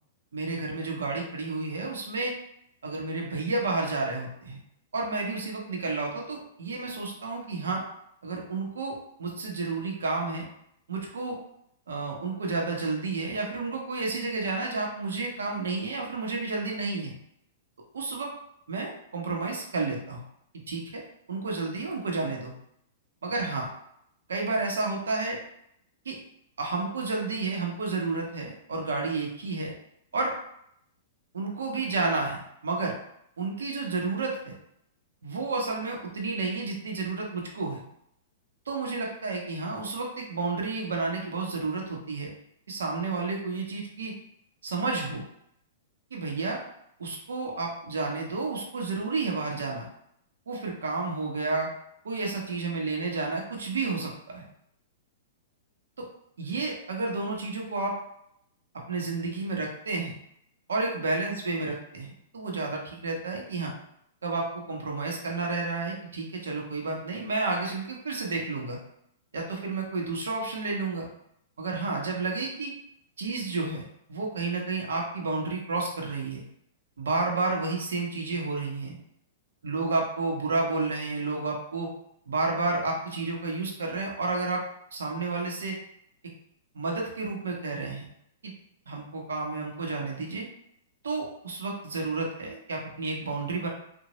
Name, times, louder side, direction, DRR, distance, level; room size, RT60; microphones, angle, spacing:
voice 1, 0.3-2.3 2.8-4.6 4.9-7.8 8.2-10.5 10.9-11.4 11.9-17.1 17.9-18.3 18.7-20.2 20.7-21.0 21.3-22.5 23.2-23.7 24.3-25.4 26.0-26.2 26.6-29.7 30.1-30.3 31.3-33.0 33.4-34.5 35.2-37.8 38.7-42.3 42.7-44.1 44.6-45.3 46.1-46.6 47.0-49.9 50.5-51.7 52.0-54.5 56.4-57.9 58.9-60.1 60.7-63.7 64.2-68.8 69.3-71.1 71.6-72.7 73.2-76.4 77.0-79.0 79.6-81.9 82.3-84.6 84.9-85.8 86.7-88.1 88.4-88.5 88.9-90.5 91.0-93.7, right 3 dB, 90° right, 0 dB, 0.7 m, -31 dB
2.9 x 2.2 x 2.9 m, 0.73 s
hypercardioid pair, 130°, 0 cm